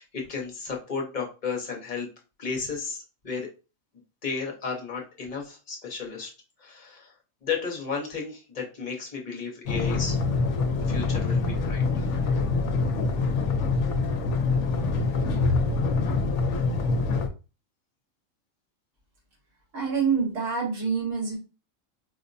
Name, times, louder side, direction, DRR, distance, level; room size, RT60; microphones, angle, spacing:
voice 1, 0.0-2.1 2.4-3.5 4.2-6.3 6.6-7.1 7.4-10.2 10.9-12.1, left 5 dB, 40° left, 0 dB, 0.9 m, -33 dB
sound 1, 9.7-17.3, left 3 dB, 70° left, 0.9 m, -25 dB
voice 2, 19.7-21.4, right 5 dB, 70° right, -2 dB, 1.7 m, -26 dB
4.5 x 2.1 x 2.6 m, 0.32 s
omnidirectional pair, 1.4 m